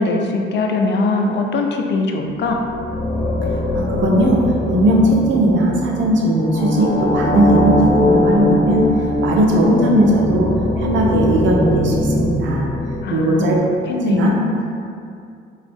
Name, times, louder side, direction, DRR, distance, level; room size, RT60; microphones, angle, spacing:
voice 1, 0.0-2.6 13.0-13.5 13.9-14.7, left 3 dB, 60° left, 3 dB, 0.5 m, -21 dB
sound 1, 2.4-13.5, left 1 dB, 25° left, 0.9 m, -21 dB
voice 2, 3.7-8.9 9.2-10.5 10.8-12.7 13.1-13.7 14.0-14.3, right 1 dB, 70° right, -2 dB, 0.8 m, -17 dB
4.4 x 3.0 x 3.5 m, 2.4 s
cardioid pair, 90°, 20 cm